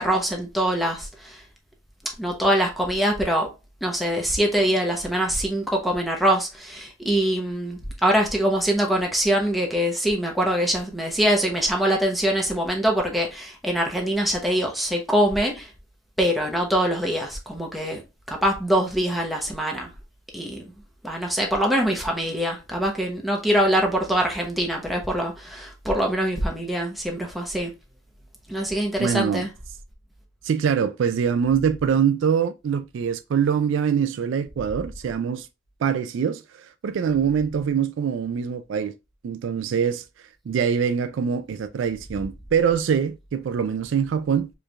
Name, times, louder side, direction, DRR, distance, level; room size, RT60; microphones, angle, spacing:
voice 1, 0.0-1.4 2.2-3.5 3.8-15.7 16.2-18.0 18.3-19.9 20.3-20.6 21.0-27.7 28.5-29.5, equal, ahead, 0.8 m, -23 dB
voice 2, 29.0-29.4 30.4-35.5 35.8-38.9 39.2-40.0 40.5-44.5, right 7 dB, 70° right, 0.3 m, -24 dB
4.5 x 3.2 x 2.3 m
head